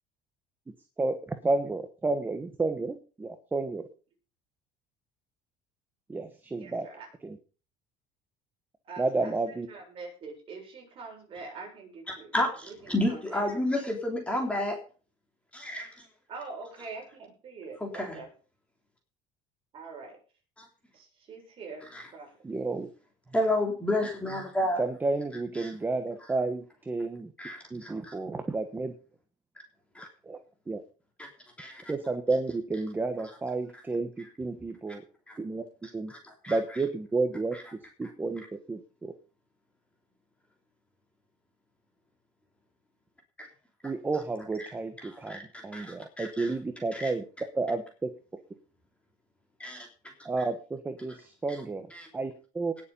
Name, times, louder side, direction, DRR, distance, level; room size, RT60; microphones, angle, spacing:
voice 1, 1.0-3.9 6.1-6.9 7.2-7.4 9.0-9.7 22.4-22.9 24.8-27.3 27.7-28.9 30.2-30.4 30.7-30.8 31.9-35.0 35.4-36.1 36.5-39.1 43.8-47.2 47.5-48.1 50.2-51.9 52.1-52.8, right 3 dB, 10° right, 7 dB, 1.3 m, -31 dB
voice 2, 6.6-7.1 8.9-9.3 9.7-12.3 12.7-13.4 16.3-17.1 17.4-18.3 19.7-20.2 20.9-21.9 22.1-22.3, right 4 dB, 35° right, 1 dB, 7.4 m, -44 dB
voice 3, 12.3-14.8 15.5-16.0 17.8-18.2 20.6-20.7 21.8-22.1 23.3-24.8 25.6-25.7 27.4-28.1 29.9-30.1 31.6-31.8 35.3-35.4 36.4-36.6 43.4-43.5 45.3-45.4 45.7-46.5 46.9-47.1 49.6-49.9 51.9-52.1, left 1 dB, 5° left, 1 dB, 3.3 m, -30 dB
19.0 x 7.3 x 5.5 m, 0.37 s
cardioid pair, 160°, 16 cm